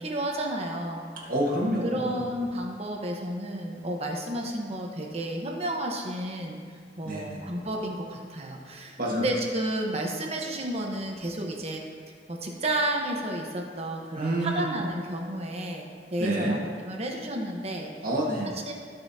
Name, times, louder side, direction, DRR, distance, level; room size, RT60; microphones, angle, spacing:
voice 1, 0.0-1.0 1.8-6.6 7.0-11.8 12.3-17.9 18.7-18.8, right 1 dB, 35° right, 1 dB, 1.0 m, -31 dB
voice 2, 1.2-2.2 7.0-7.4 9.0-9.2 14.1-14.6 16.2-16.5 18.0-18.5, right 1 dB, 55° right, -4 dB, 1.5 m, -28 dB
16.0 x 5.5 x 2.8 m, 2.1 s
head